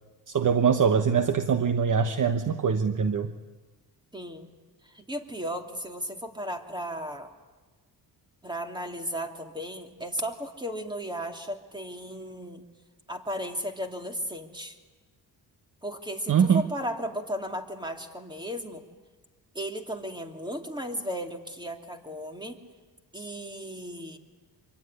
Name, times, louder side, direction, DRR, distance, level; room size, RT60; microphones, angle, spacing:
voice 1, 0.3-3.3 16.3-16.6, right 6 dB, 45° right, 8 dB, 1.2 m, -23 dB
voice 2, 4.1-4.5 4.9-7.3 8.4-12.6 13.1-14.8 15.8-18.8 19.5-22.6 23.1-24.2, equal, 10° right, 4 dB, 3.0 m, -35 dB
25.5 x 23.5 x 9.9 m, 1.3 s
cardioid pair, 95°, 42 cm